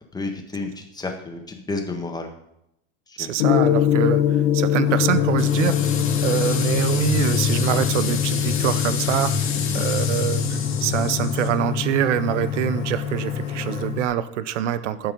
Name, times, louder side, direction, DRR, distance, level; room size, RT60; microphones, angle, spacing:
voice 1, 0.1-2.3 3.1-3.3 6.3-6.4 9.6-9.8, left 3 dB, 10° left, 3 dB, 1.4 m, -31 dB
voice 2, 3.2-15.1, right 11 dB, 85° right, 15 dB, 0.7 m, -25 dB
Gong, 3.4-14.1, left 11 dB, 65° left, 1.0 m, -24 dB
sound 1, 4.8-13.9, left 3 dB, 85° left, 2.5 m, -30 dB
sound 2, 5.4-11.5, left 7 dB, 35° left, 1.9 m, -31 dB
11.5 x 4.7 x 5.2 m, 0.79 s
supercardioid pair, 115°, 35 cm